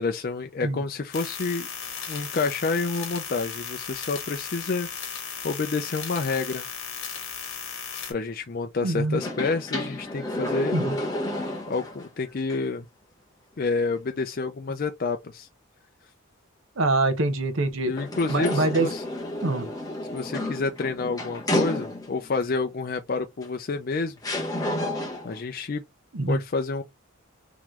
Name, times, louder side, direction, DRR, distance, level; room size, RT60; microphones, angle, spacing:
voice 1, 0.0-1.7 2.1-4.9 5.4-6.7 8.1-10.8 11.7-12.9 13.6-15.5 17.9-19.0 20.1-24.2 25.2-25.8 26.3-26.8, left 4 dB, 40° left, 0.4 m, -29 dB
sound 1, 1.1-8.1, left 7 dB, 65° left, 1.4 m, -36 dB
voice 2, 8.8-9.2 10.7-10.9 16.8-17.9 18.3-18.9 19.4-19.7 26.1-26.4, right 2 dB, 65° right, 0.8 m, -24 dB
sound 2, 9.1-12.1 12.5-12.6 18.0-22.3 23.4-23.5 24.2-25.4, left 1 dB, 15° left, 1.0 m, -30 dB
3.7 x 3.0 x 3.0 m
head